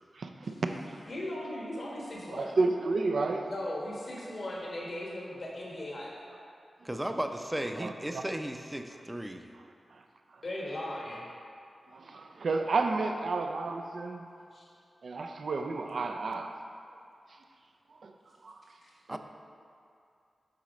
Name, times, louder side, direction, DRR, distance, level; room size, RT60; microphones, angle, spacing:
voice 1, 0.2-0.8 2.3-3.5 7.8-8.2 11.9-14.3 15.0-16.5 18.0-18.1 18.4-18.6 19.1-19.2, right 3 dB, 75° right, 5 dB, 0.5 m, -31 dB
voice 2, 1.1-2.6 3.4-6.1 10.4-11.2 14.5-14.6 18.8-18.9, left 1 dB, 60° left, -4 dB, 1.3 m, -38 dB
voice 3, 6.8-9.4 19.1-19.2, right 1 dB, 10° right, 5 dB, 0.5 m, -35 dB
7.6 x 4.2 x 5.1 m, 2.4 s
cardioid pair, 50°, 0 cm